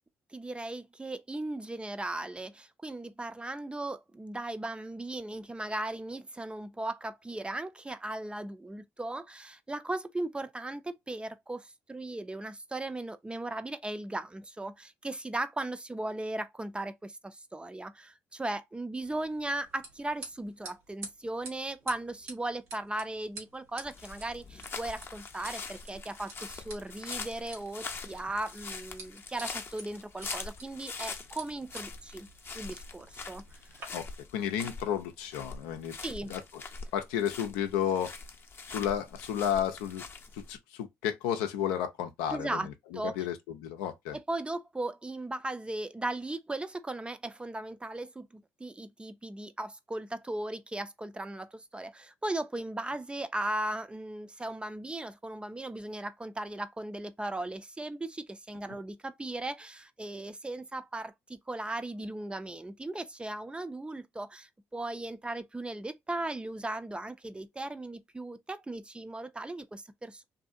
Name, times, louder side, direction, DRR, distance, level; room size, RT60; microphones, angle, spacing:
voice 1, 0.3-32.3 32.5-33.4 33.7-33.9 36.0-36.3 42.3-43.1 44.3-70.2, right 2 dB, 15° right, 0.5 m, -37 dB
sound 1, 19.0-33.8, right 3 dB, 90° right, 1.2 m, -50 dB
sound 2, 23.8-40.6, left 4 dB, 35° left, 0.6 m, -43 dB
voice 2, 34.3-35.9 36.2-36.4 36.9-38.1 38.7-40.0 40.3-44.2, left 9 dB, 85° left, 0.5 m, -32 dB
2.7 x 2.6 x 2.5 m
hypercardioid pair, 55°, 6 cm